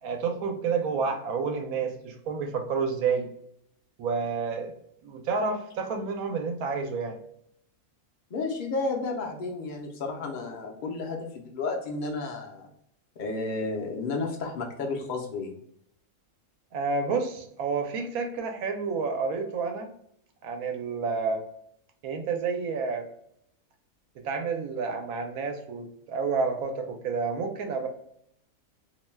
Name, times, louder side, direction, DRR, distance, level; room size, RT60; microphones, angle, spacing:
voice 1, 0.0-3.3 4.0-4.7 5.0-7.2 16.7-19.9 20.4-21.4 22.0-23.0 24.2-27.9, right 5 dB, 85° right, 4 dB, 1.1 m, -29 dB
voice 2, 8.3-12.7 13.2-15.6, left 3 dB, 55° left, 1 dB, 0.5 m, -32 dB
2.7 x 2.2 x 3.1 m, 0.72 s
omnidirectional pair, 1.5 m